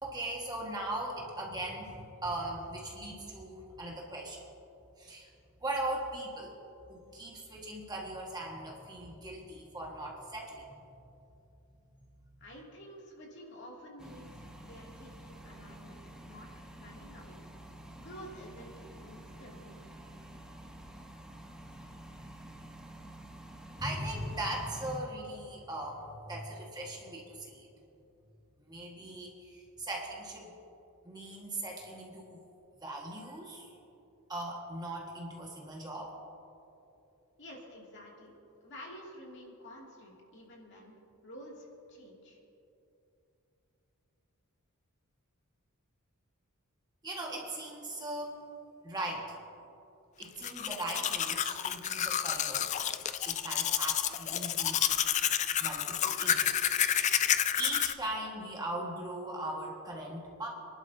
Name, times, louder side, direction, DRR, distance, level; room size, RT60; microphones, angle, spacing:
voice 1, 0.0-4.4 5.0-5.3 5.6-6.5 6.9-10.8 23.8-27.7 28.6-30.5 31.0-32.4 32.8-33.7 34.3-36.1 47.0-48.4 48.8-49.4 50.2-52.7 53.2-55.1 55.6-56.7 57.2-60.5, right 1 dB, 20° right, -2 dB, 1.6 m, -39 dB
voice 2, 12.4-16.0 16.2-17.4 18.0-18.7 19.0-19.9 37.4-38.3 38.6-42.4, equal, 55° left, -3 dB, 2.5 m, -50 dB
sound 1, 14.0-25.0, right 1 dB, 5° right, 1.0 m, -49 dB
Domestic sounds home sounds, 50.2-57.9, left 10 dB, 30° left, 0.3 m, -30 dB
27.0 x 11.5 x 2.8 m, 2.8 s
head